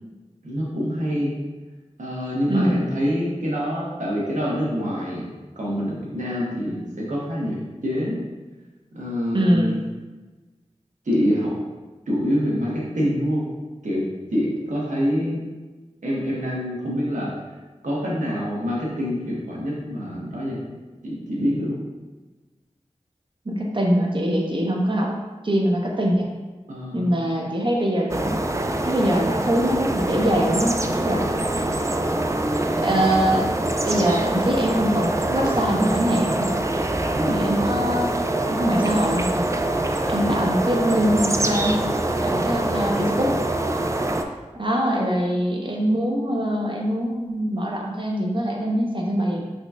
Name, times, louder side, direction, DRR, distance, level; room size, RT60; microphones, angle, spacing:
voice 1, 0.4-1.3 2.0-5.3 5.6-8.2 8.9-9.8 11.0-11.5 12.1-13.4 13.8-14.1 14.3-15.4 16.0-17.3 17.8-20.6 21.0-21.8 26.7-27.2 37.1-37.4 40.2-40.4, equal, 85° right, -5 dB, 1.3 m, -25 dB
voice 2, 2.5-2.8 9.3-9.7 23.4-25.1 25.4-26.3 26.9-28.3 28.8-31.2 32.8-33.5 33.9-36.5 37.3-38.1 38.5-39.4 40.1-41.8 42.2-43.4 44.6-49.4, equal, 40° right, -1 dB, 1.0 m, -23 dB
sound 1, 28.1-44.2, right 1 dB, 25° right, 0.4 m, -24 dB
5.2 x 4.2 x 2.4 m, 1.2 s
cardioid pair, 40°, 12 cm